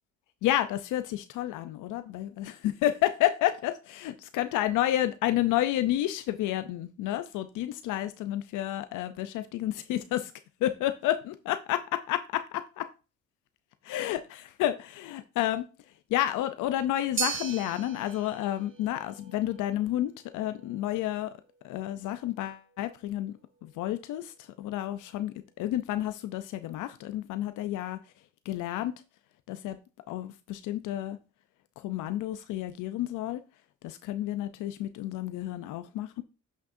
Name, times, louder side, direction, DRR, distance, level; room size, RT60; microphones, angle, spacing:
voice 1, 0.4-10.3 10.6-12.9 13.8-15.7 16.1-21.3 21.6-23.3 23.6-28.0 28.5-28.9 29.5-29.8 30.1-31.2 31.8-33.4 33.8-36.2, left 13 dB, 90° left, 11 dB, 0.6 m, -30 dB
sound 1, 17.2-25.5, right 6 dB, 40° right, 1.3 m, -41 dB
9.1 x 6.3 x 2.6 m, 0.31 s
cardioid pair, 90°, 30 cm